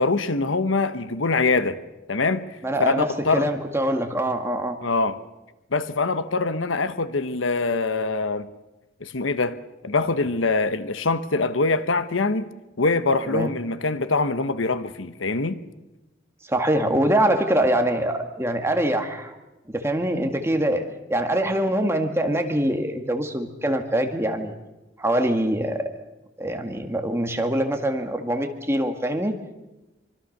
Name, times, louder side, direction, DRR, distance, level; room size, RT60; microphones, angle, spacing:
voice 1, 0.0-1.8 2.1-2.4 2.8-3.5 4.8-5.2 5.7-8.5 9.0-9.6 9.8-12.5 12.8-15.6, left 3 dB, 90° left, 1.1 m, -23 dB
voice 2, 2.6-4.8 13.2-13.5 16.5-19.4 19.7-20.8 21.1-24.5 25.0-25.9 26.4-29.3, right 1 dB, 15° right, 1.9 m, -24 dB
24.5 x 24.0 x 6.7 m
head